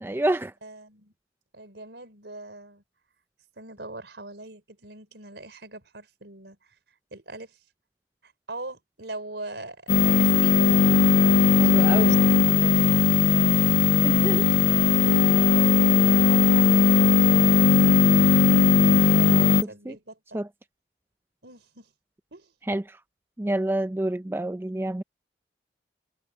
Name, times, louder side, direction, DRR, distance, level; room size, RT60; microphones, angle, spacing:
voice 1, 0.0-0.5 11.6-12.1 14.0-14.4 19.3-19.5 19.9-20.0 20.3-20.5 22.7-23.0 23.4-25.0, right 1 dB, 15° right, 0.4 m, -28 dB
voice 2, 0.6-1.1 1.5-2.8 3.6-6.8 7.1-7.6 8.2-10.7 11.6-13.5 14.3-14.7 15.5-18.9 19.2-20.4 21.4-21.9 22.3-22.5, right 2 dB, 75° right, 4.1 m, -42 dB
sound 1, 9.9-19.6, left 5 dB, 85° left, 0.5 m, -18 dB
head